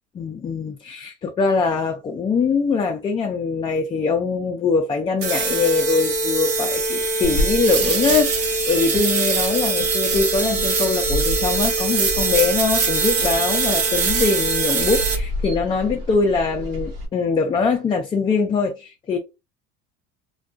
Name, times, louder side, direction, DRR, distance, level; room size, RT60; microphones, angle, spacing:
voice 1, 0.1-19.2, left 4 dB, 25° left, 0.4 m, -22 dB
sound 1, 5.2-15.2, right 4 dB, 55° right, 0.8 m, -22 dB
sound 2, 7.2-17.1, equal, 85° right, 0.9 m, -31 dB
2.2 x 2.2 x 2.5 m
supercardioid pair, 110°, 21 cm